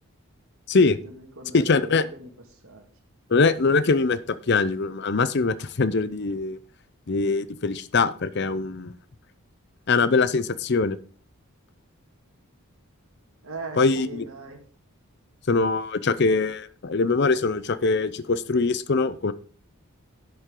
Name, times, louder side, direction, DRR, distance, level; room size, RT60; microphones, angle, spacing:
voice 1, 1.0-2.3 2.6-2.8 13.4-14.6, right 2 dB, 70° right, 2 dB, 2.0 m, -39 dB
voice 2, 1.5-2.0 3.3-6.6 7.1-8.9 9.9-11.0 13.8-14.2 15.5-19.3, left 4 dB, 50° left, 15 dB, 0.5 m, -22 dB
11.0 x 7.9 x 3.8 m, 0.43 s
head